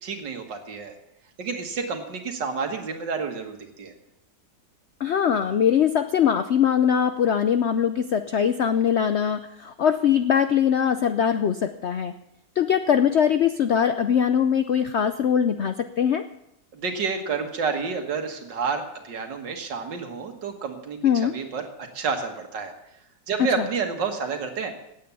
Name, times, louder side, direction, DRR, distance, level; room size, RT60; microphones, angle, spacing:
voice 1, 0.0-0.9 1.4-3.9 16.7-21.6 21.9-22.7 23.3-24.7, right 5 dB, 80° right, 5 dB, 2.1 m, -29 dB
voice 2, 5.0-12.1 12.6-16.2 21.0-21.4 23.6-23.7, left 8 dB, 90° left, 10 dB, 0.5 m, -22 dB
17.5 x 8.6 x 6.9 m, 0.82 s
omnidirectional pair, 1.9 m